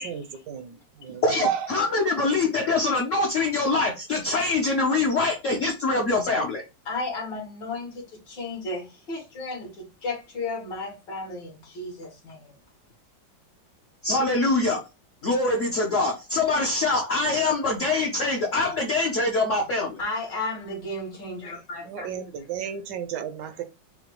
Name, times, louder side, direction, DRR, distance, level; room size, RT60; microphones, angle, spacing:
voice 1, 0.0-1.7 21.9-23.6, right 9 dB, 75° right, 1.2 m, -32 dB
voice 2, 1.2-6.6 14.0-14.8 15.2-20.0, left 3 dB, 55° left, 0.9 m, -24 dB
voice 3, 6.9-12.5 20.0-22.1, left 2 dB, 70° left, 2.1 m, -34 dB
5.7 x 2.2 x 3.0 m
omnidirectional pair, 2.1 m